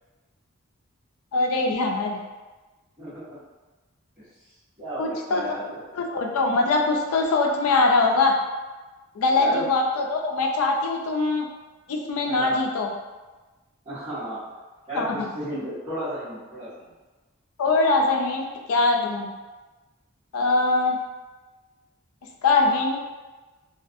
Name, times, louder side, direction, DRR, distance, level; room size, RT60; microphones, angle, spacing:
voice 1, 1.3-2.2 5.0-5.4 5.9-8.3 9.2-11.5 11.9-12.9 15.0-15.2 17.6-19.3 20.3-21.0 22.4-23.1, left 3 dB, 90° left, 2 dB, 0.4 m, -22 dB
voice 2, 4.8-5.8 9.3-9.7 12.2-12.6 13.8-14.4 14.9-16.9 20.4-20.5, right 1 dB, 25° right, -19 dB, 1.2 m, -34 dB
2.4 x 2.3 x 2.5 m, 1.2 s
head